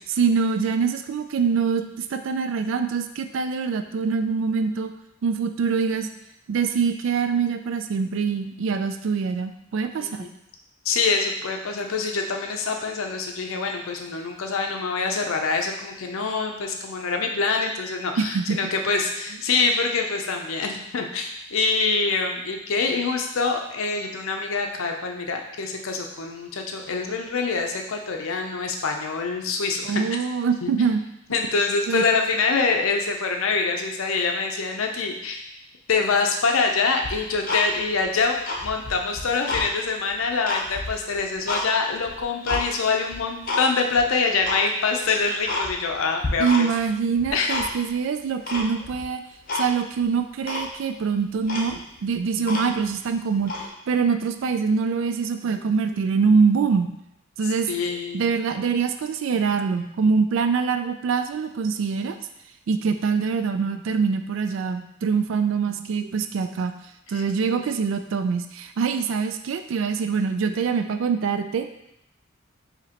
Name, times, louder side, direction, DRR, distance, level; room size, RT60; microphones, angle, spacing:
voice 1, 0.1-4.9 5.2-6.1 6.5-10.3 18.2-18.6 29.8-31.0 31.9-32.0 46.4-49.2 49.5-53.5 53.9-56.9 57.4-57.7 58.1-62.2 62.7-66.7 67.1-71.7, right 5 dB, 65° right, 8 dB, 0.3 m, -24 dB
voice 2, 10.0-10.3 10.8-30.0 30.6-30.7 31.3-35.4 35.9-46.7 47.3-47.5 57.7-58.2 67.1-67.2, left 4 dB, 75° left, 3 dB, 0.6 m, -25 dB
Tick-tock, 37.0-38.0 38.4-39.7 40.1-41.7 42.0-42.6 43.1-43.6 43.9-44.0 44.4-44.6 45.0-45.1 45.4-46.0 46.2-46.9 47.1-47.9 48.5-49.0 49.5-49.7 50.0-50.1 50.4-50.7 51.2-51.3 51.4-52.9 53.4-53.7, left 3 dB, 45° left, 0.7 m, -30 dB
4.9 x 2.8 x 2.9 m, 0.81 s
head